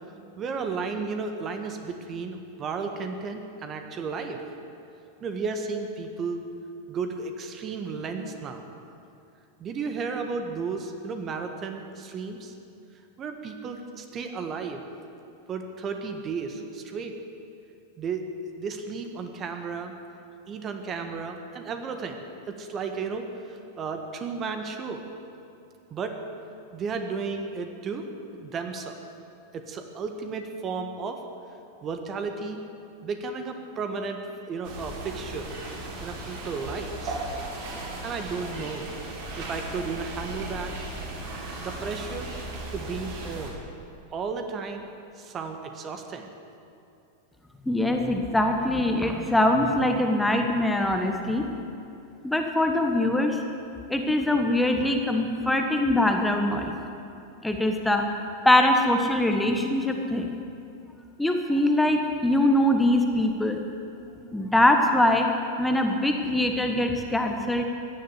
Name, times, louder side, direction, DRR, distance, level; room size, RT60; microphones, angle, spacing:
voice 1, 0.4-4.4 5.2-6.4 6.9-8.6 9.6-12.5 13.2-14.8 15.5-17.1 18.0-19.9 20.5-22.2 22.6-25.0 25.9-26.2 26.7-28.0 28.3-29.0 29.5-31.2 31.8-32.6 33.0-34.2 34.5-35.5 36.0-37.2 38.0-38.9 39.4-40.7 41.6-42.3 42.7-43.6 44.1-44.8 45.2-46.3, right 4 dB, 30° right, 5 dB, 1.5 m, -33 dB
sound 1, 34.6-43.5, right 2 dB, 45° right, 3.5 m, -36 dB
voice 2, 47.7-51.4 52.2-53.4 53.9-56.7 57.4-58.0 58.4-60.4 61.2-63.6 64.3-65.3 65.6-67.6, left 1 dB, 5° left, 4 dB, 1.3 m, -23 dB
16.0 x 11.0 x 8.0 m, 2.7 s
figure-of-eight pair, 90°, 0 cm